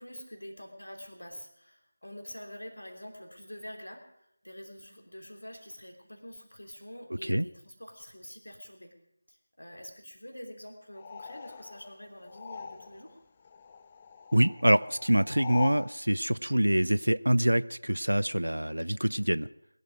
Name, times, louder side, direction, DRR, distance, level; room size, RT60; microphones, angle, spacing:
voice 1, 0.0-4.1 4.4-9.0 9.3-13.1, equal, 80° left, 3 dB, 3.1 m, -46 dB
sound 1, 10.9-13.2 13.4-15.9, left 5 dB, 20° left, 0.5 m, -42 dB
voice 2, 14.3-19.5, right 1 dB, 85° right, 19 dB, 0.5 m, -25 dB
20.5 x 11.5 x 5.1 m, 0.81 s
figure-of-eight pair, 165°, 0 cm